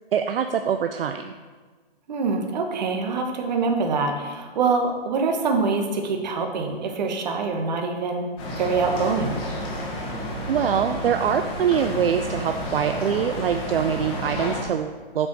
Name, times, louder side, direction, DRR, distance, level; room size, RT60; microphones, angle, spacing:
voice 1, 0.1-1.3 10.5-15.3, right 8 dB, 65° right, 7 dB, 0.6 m, -24 dB
voice 2, 2.1-8.3 8.6-9.4, right 4 dB, 45° right, 2 dB, 1.4 m, -24 dB
sound 1, 8.4-14.6, left 1 dB, 15° left, 1.3 m, -31 dB
7.8 x 5.4 x 6.2 m, 1.4 s
hypercardioid pair, 160°, 30 cm